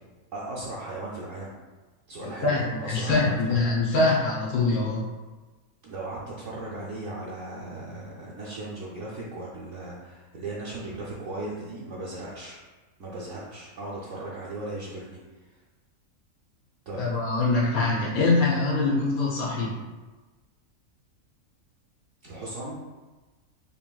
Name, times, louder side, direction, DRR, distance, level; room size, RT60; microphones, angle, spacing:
voice 1, 0.3-1.5 2.1-3.7 5.8-12.6 13.0-15.2 15.5-15.6 16.9-17.1 22.2-22.8, right 2 dB, 65° right, -5 dB, 0.9 m, -37 dB
voice 2, 2.4-5.0 16.9-19.7, left 3 dB, 80° left, -5 dB, 1.4 m, -24 dB
4.8 x 2.9 x 2.3 m, 1.2 s
omnidirectional pair, 1.5 m